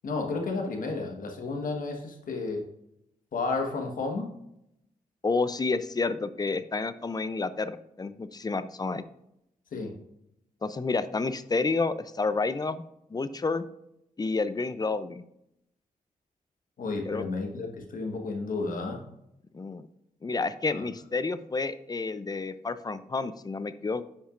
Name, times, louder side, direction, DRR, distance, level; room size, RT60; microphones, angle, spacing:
voice 1, 0.0-2.7 3.3-4.3 9.7-10.0 16.8-19.0 20.7-20.9, left 3 dB, 70° left, 2 dB, 1.4 m, -32 dB
voice 2, 5.2-9.0 10.6-12.8 13.1-13.6 14.2-15.2 17.1-17.3 19.5-19.9 20.2-24.0, left 3 dB, 25° left, 13 dB, 0.5 m, -30 dB
10.0 x 5.6 x 2.5 m, 0.80 s
cardioid pair, 75°, 15 cm